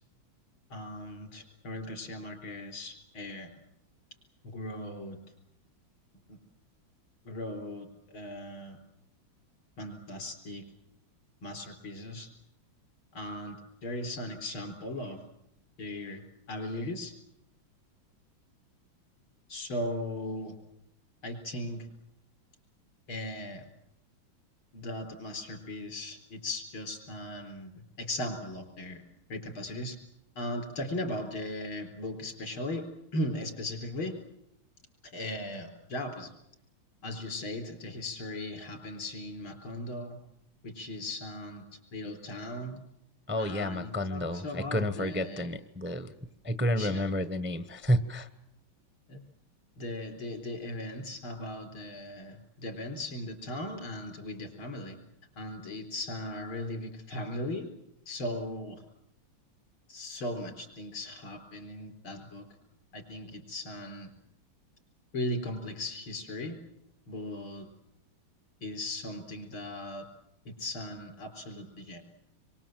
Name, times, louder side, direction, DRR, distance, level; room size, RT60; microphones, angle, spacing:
voice 1, 0.7-3.5 4.4-5.2 6.3-6.4 7.2-8.8 9.8-10.6 11.4-12.3 13.1-15.2 15.8-16.2 16.5-17.1 19.5-20.6 21.2-21.9 23.1-23.7 24.7-29.0 29.3-30.0 30.4-34.2 35.0-36.3 37.0-40.2 40.6-42.8 43.4-45.5 46.8-47.1 49.1-49.2 49.8-55.0 55.4-57.7 58.1-58.8 59.9-62.5 62.9-64.1 65.1-66.6 67.1-67.7 68.6-70.1 70.4-72.0, left 1 dB, 90° left, 4 dB, 5.0 m, -38 dB
voice 2, 43.3-46.1 46.4-48.3, equal, 10° right, 11 dB, 0.5 m, -30 dB
27.0 x 23.5 x 7.6 m, 0.82 s
omnidirectional pair, 2.2 m